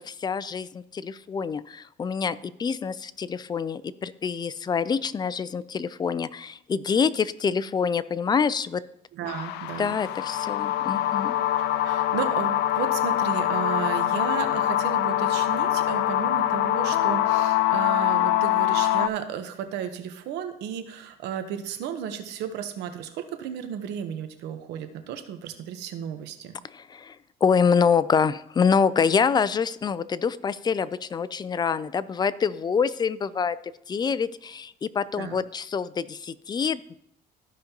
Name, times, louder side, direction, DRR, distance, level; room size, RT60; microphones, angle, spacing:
voice 1, 0.0-8.8 9.8-11.3 26.6-27.2 27.4-33.6 33.9-37.0, left 6 dB, 25° left, 16 dB, 0.4 m, -26 dB
voice 2, 9.1-10.0 11.8-26.5 35.2-35.4, right 8 dB, 85° right, 8 dB, 1.0 m, -34 dB
sound 1, 9.3-19.1, left 13 dB, 90° left, 0.4 m, -24 dB
14.0 x 5.2 x 2.9 m, 0.74 s
cardioid pair, 110°, 17 cm